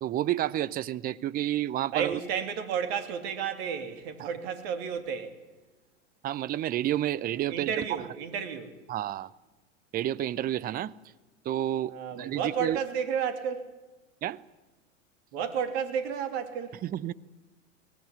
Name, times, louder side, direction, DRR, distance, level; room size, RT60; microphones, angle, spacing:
voice 1, 0.0-2.2 4.2-4.3 6.2-7.9 8.9-9.3 9.9-10.9 11.4-12.8 14.2-14.4 16.8-17.1, right 12 dB, 25° right, 0.7 m, -30 dB
voice 2, 1.9-5.3 7.5-8.7 11.9-13.7 15.3-16.8, right 7 dB, 50° right, 3.1 m, -32 dB
22.0 x 19.0 x 9.9 m
figure-of-eight pair, 90°, 39 cm